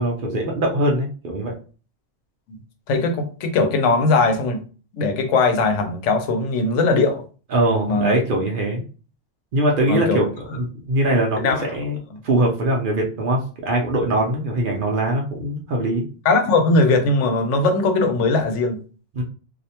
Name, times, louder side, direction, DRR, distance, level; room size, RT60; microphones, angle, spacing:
voice 1, 0.0-1.5 7.5-8.8 9.5-12.0 12.2-16.1 19.1-19.2, right 1 dB, 55° right, 0.6 m, -22 dB
voice 2, 2.9-4.6 4.9-7.2 7.9-8.2 9.9-10.2 11.4-11.7 12.1-12.2 16.2-18.8, left 3 dB, 90° left, 0.9 m, -19 dB
2.5 x 2.1 x 2.7 m
omnidirectional pair, 1.2 m